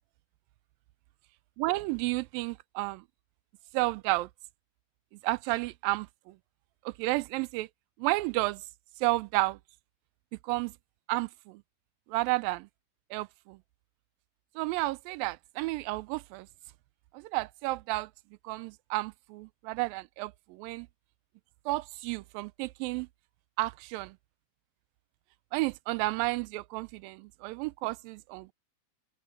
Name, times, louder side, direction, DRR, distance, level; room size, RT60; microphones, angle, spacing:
voice 1, 1.6-3.0 3.7-4.3 5.2-6.4 6.9-7.7 8.0-8.6 9.0-9.6 10.4-10.7 11.1-11.6 12.1-12.7 13.1-13.6 14.6-16.5 17.1-18.1 18.4-20.9 21.7-23.1 23.6-24.2 25.5-28.5, right 21 dB, 85° right, 2.3 m, -31 dB
open air
omnidirectional pair, 4.0 m